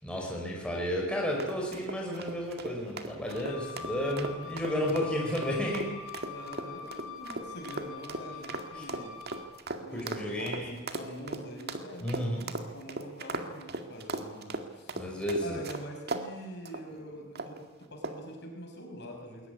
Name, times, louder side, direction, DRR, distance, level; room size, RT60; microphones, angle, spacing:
voice 1, 0.0-5.9 8.8-8.9 9.9-10.7 12.0-12.4 15.0-15.6, equal, 5° left, -2 dB, 5.6 m, -32 dB
sound 1, 1.4-16.3 16.7-16.8 17.4-17.6 18.0-18.3, right 2 dB, 50° right, 2.0 m, -38 dB
Wind instrument woodwind instrument, 3.2-9.6, left 6 dB, 85° left, 5.4 m, -44 dB
voice 2, 6.2-9.2 9.8-15.1 15.4-19.5, equal, 55° left, 2 dB, 6.2 m, -44 dB
21.5 x 18.5 x 9.7 m, 1.2 s
head